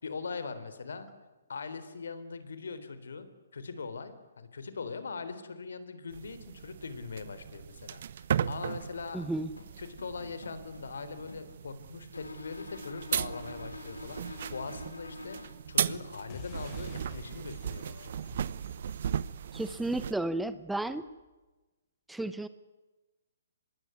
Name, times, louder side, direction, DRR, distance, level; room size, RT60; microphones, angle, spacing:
voice 1, 0.0-1.1 1.5-9.3 9.8-18.2, left 4 dB, 70° left, 12 dB, 3.7 m, -41 dB
sound 1, 6.1-20.1, right 9 dB, 55° right, 1.0 m, -37 dB
voice 2, 9.1-9.5 19.5-21.1 22.1-22.5, right 2 dB, 5° right, 14 dB, 0.9 m, -33 dB
sound 2, 9.5-11.6 12.1-15.5, left 2 dB, 85° left, 5.5 m, -46 dB
sound 3, 16.3-21.2, left 7 dB, 40° left, 6.0 m, -51 dB
25.5 x 21.0 x 9.7 m, 1.2 s
figure-of-eight pair, 130°, 0 cm